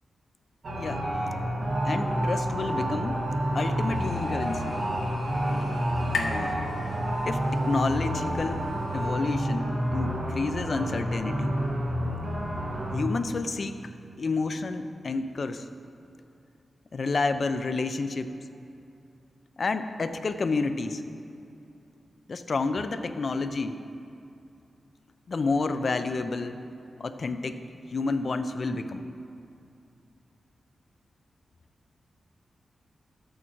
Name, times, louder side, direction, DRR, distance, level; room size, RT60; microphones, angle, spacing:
sound 1, 0.6-13.0, equal, 55° right, 1.8 m, -29 dB
voice 1, 1.8-3.2 3.5-4.7 6.1-6.6 7.3-8.6 8.9-11.6 12.9-13.8 14.2-15.7 16.9-18.3 19.6-21.0 22.3-23.8 25.3-26.6 27.0-27.6 27.9-29.1, left 3 dB, 50° left, 10 dB, 0.5 m, -29 dB
sound 2, 3.8-7.6, left 4 dB, 85° left, 0.9 m, -38 dB
12.5 x 8.7 x 4.6 m, 2.6 s
wide cardioid pair, 120°, 0 cm